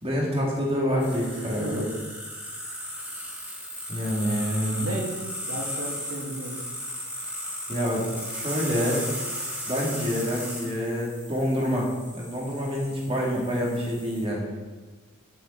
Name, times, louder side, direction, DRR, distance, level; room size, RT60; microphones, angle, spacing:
voice 1, 0.0-1.8 3.9-4.9 7.7-9.0 9.6-11.9 12.1-14.5, equal, 30° right, -4 dB, 2.8 m, -27 dB
sound 1, 1.0-14.2, equal, 10° right, 3.4 m, -36 dB
voice 2, 1.3-2.0 4.7-6.5, right 1 dB, 80° right, -2 dB, 2.1 m, -34 dB
10.5 x 8.6 x 4.6 m, 1.3 s
head